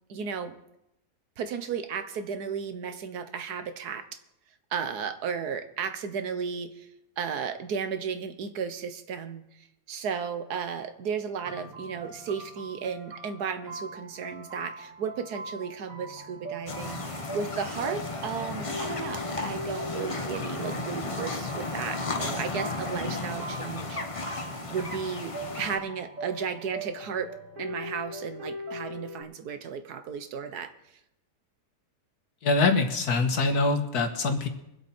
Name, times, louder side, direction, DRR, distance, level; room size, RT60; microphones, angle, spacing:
voice 1, 0.1-0.6 1.4-4.1 4.7-6.9 7.2-24.0 24.7-30.7, right 6 dB, 80° right, 10 dB, 1.6 m, -34 dB
sound 1, 11.4-29.2, right 1 dB, 55° right, 2.6 m, -41 dB
sound 2, 16.7-25.8, left 3 dB, 25° left, 0.9 m, -34 dB
voice 2, 32.4-34.5, left 3 dB, 75° left, 7 dB, 1.9 m, -24 dB
23.5 x 8.1 x 4.3 m, 0.86 s
omnidirectional pair, 1.7 m